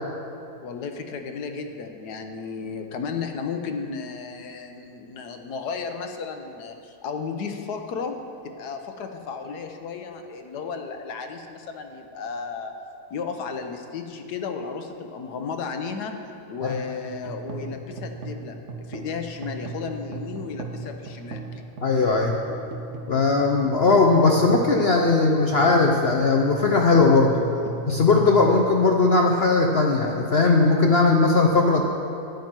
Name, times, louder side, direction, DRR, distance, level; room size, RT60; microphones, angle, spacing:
voice 1, 0.6-8.1 8.4-12.7 13.1-16.2 16.5-21.4, left 5 dB, 85° left, 5 dB, 1.4 m, -34 dB
sound 1, 17.1-29.5, right 3 dB, 50° right, 1.2 m, -37 dB
voice 2, 21.8-22.3 23.1-27.4 27.9-31.8, left 3 dB, 55° left, 1 dB, 0.8 m, -19 dB
12.5 x 10.5 x 4.5 m, 2.7 s
omnidirectional pair, 1.7 m